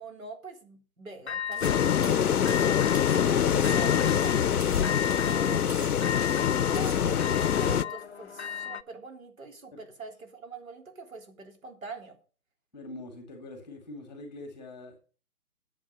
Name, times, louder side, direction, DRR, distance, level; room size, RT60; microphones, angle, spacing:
voice 1, 0.0-6.1 6.7-12.2, right 3 dB, 65° right, 2 dB, 3.7 m, -44 dB
sound 1, 1.3-2.1 2.5-3.3 3.6-4.5 4.8-8.8, left 8 dB, 50° left, 0.5 m, -34 dB
sound 2, 1.5-3.2 3.5-4.9 5.1-5.4 5.7-6.4 6.7-7.0, right 2 dB, 25° right, 2.2 m, -45 dB
sound 3, 1.6-7.8, left 8 dB, 85° left, 0.7 m, -25 dB
voice 2, 12.7-15.0, left 2 dB, ahead, 4 dB, 1.8 m, -44 dB
11.0 x 7.6 x 5.4 m, 0.39 s
hypercardioid pair, 165°, 44 cm